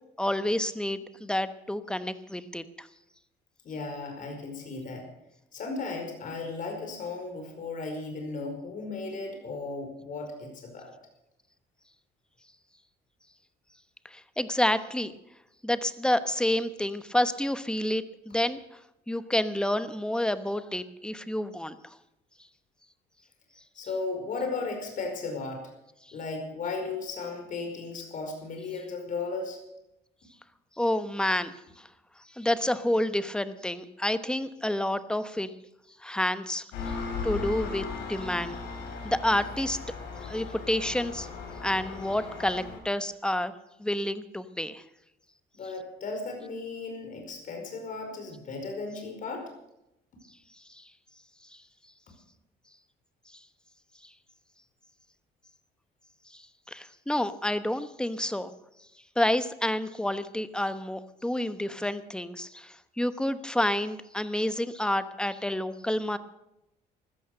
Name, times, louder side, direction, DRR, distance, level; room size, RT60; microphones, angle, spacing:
voice 1, 0.2-2.9 14.0-15.1 15.6-18.6 19.1-21.8 30.8-31.9 32.4-35.5 36.0-37.0 37.2-38.6 39.0-39.8 40.2-41.3 41.6-43.5 43.8-44.8 50.7-50.9 56.3-58.5 59.2-66.2, left 1 dB, 5° left, 12 dB, 1.0 m, -29 dB
voice 2, 3.6-5.1 5.5-10.9 23.7-25.7 26.1-29.6 45.5-49.5, left 3 dB, 50° left, 3 dB, 5.0 m, -35 dB
Engine, 36.7-42.8, left 4 dB, 85° left, 5.2 m, -37 dB
15.0 x 13.5 x 6.7 m, 0.86 s
cardioid pair, 110°, 17 cm